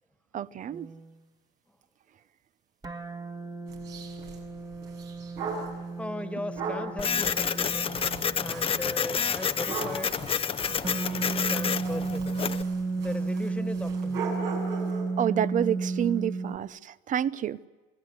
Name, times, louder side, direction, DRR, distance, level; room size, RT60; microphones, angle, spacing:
voice 1, 0.3-0.9 15.2-17.6, right 9 dB, 50° right, 0.8 m, -28 dB
sound 1, 0.7-1.1 2.8-9.1 10.8-16.6, right 4 dB, 20° right, 1.6 m, -33 dB
sound 2, 3.7-5.8 6.6-15.1, right 4 dB, 90° right, 6.6 m, -39 dB
voice 2, 6.0-7.9 8.4-10.2 10.7-12.7 13.0-14.3, left 1 dB, 5° left, 1.7 m, -38 dB
Printer, 7.0-12.6, left 7 dB, 35° left, 0.7 m, -29 dB
27.5 x 18.0 x 9.5 m
cardioid pair, 110°, 17 cm